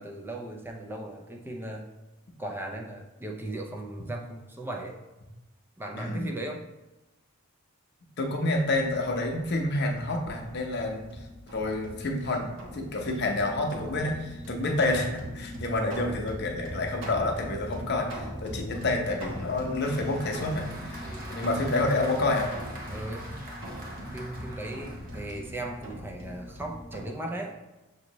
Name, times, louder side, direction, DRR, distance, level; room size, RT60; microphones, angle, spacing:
voice 1, 0.0-1.9 2.4-5.0 5.8-6.6 18.6-18.8 21.0-21.4 22.9-23.3 24.1-27.6, right 1 dB, 10° right, 1 dB, 0.4 m, -37 dB
voice 2, 5.9-6.4 8.2-11.1 11.5-20.7 21.3-22.5, left 2 dB, 55° left, 2 dB, 0.7 m, -28 dB
sound 1, 8.5-27.1, equal, 65° right, 1.1 m, -40 dB
Applause, 18.7-25.8, right 1 dB, 45° right, 0.9 m, -45 dB
6.2 x 2.7 x 3.0 m, 1.1 s
head